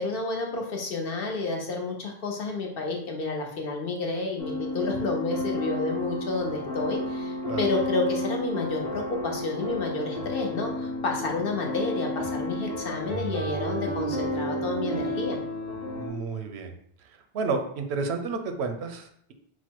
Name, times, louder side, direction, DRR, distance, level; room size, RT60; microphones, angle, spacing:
voice 1, 0.0-15.4, left 3 dB, 60° left, 1 dB, 0.9 m, -30 dB
sound 1, 4.4-16.1, equal, 35° left, 1.2 m, -32 dB
voice 2, 16.0-16.7 17.3-19.3, right 4 dB, 80° right, 6 dB, 0.9 m, -31 dB
4.4 x 2.1 x 4.4 m, 0.66 s
omnidirectional pair, 1.1 m